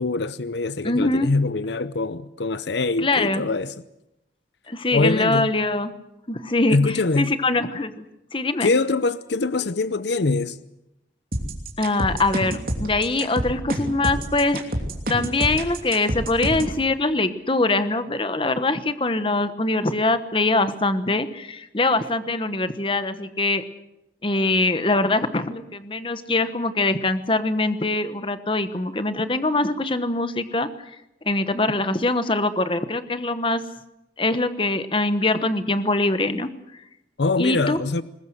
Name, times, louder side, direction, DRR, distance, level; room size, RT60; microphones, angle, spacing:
voice 1, 0.0-3.7 4.9-5.5 6.7-7.3 8.6-10.6 37.2-38.0, left 3 dB, 75° left, 0.7 m, -23 dB
voice 2, 0.8-1.3 3.0-3.4 4.7-5.9 6.3-8.0 8.3-8.7 11.8-14.6 15.1-23.6 24.2-30.7 31.2-33.6 34.2-36.5 37.4-37.8, left 2 dB, 30° left, 1.1 m, -23 dB
sound 1, 11.3-16.8, right 1 dB, 50° right, 3.0 m, -27 dB
21.0 x 20.5 x 7.9 m
head